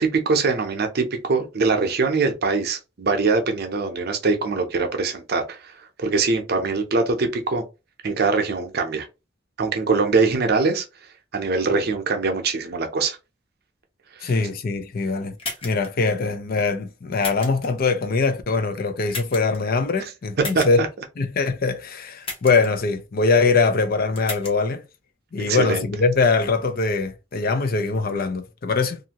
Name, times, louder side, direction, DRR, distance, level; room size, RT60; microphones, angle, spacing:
voice 1, 0.0-5.7 6.0-7.6 8.0-9.1 9.6-10.8 11.3-13.2 14.2-14.3 20.4-20.9 25.4-25.9, right 4 dB, 55° right, 0.6 m, -22 dB
voice 2, 14.2-15.3 15.6-20.8 21.2-24.8 25.3-29.0, left 4 dB, 50° left, 0.5 m, -22 dB
sound 1, 15.4-15.9 17.2-17.7 19.1-19.6 20.4-20.7 22.2-22.7 24.2-24.5, left 2 dB, 30° left, 0.9 m, -33 dB
2.7 x 2.5 x 2.8 m
head